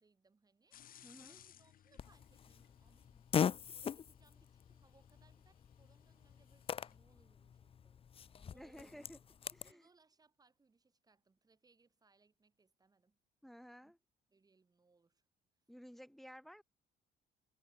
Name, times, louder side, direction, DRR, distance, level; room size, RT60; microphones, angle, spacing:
voice 1, 0.0-9.1 9.6-13.2 13.8-13.9 14.3-15.3, right 4 dB, 20° right, 7.9 m, -72 dB
sound 1, 0.7-6.9, left 10 dB, 55° left, 4.6 m, -64 dB
voice 2, 1.0-1.4 8.5-9.2 9.5-9.9 13.4-14.0 15.7-16.6, equal, ahead, 4.7 m, -54 dB
Fart, 2.0-9.7, left 7 dB, 35° left, 0.6 m, -42 dB
cardioid pair, 110°, 17 cm